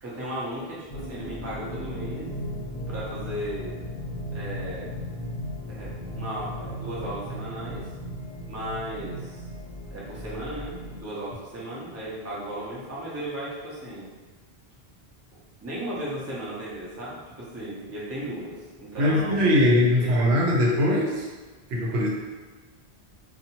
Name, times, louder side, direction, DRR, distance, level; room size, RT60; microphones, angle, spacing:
voice 1, 0.0-2.4 2.9-3.7 4.3-4.9 5.7-7.9 8.5-9.4 9.9-14.1 15.6-19.7 20.0-20.3, right 1 dB, 20° right, -7 dB, 0.6 m, -35 dB
sound 1, 0.9-11.0, equal, 40° left, 0.7 m, -36 dB
voice 2, 19.0-21.2 21.7-22.1, left 1 dB, 80° right, -2 dB, 0.9 m, -21 dB
2.7 x 2.3 x 2.8 m, 1.3 s
omnidirectional pair, 1.1 m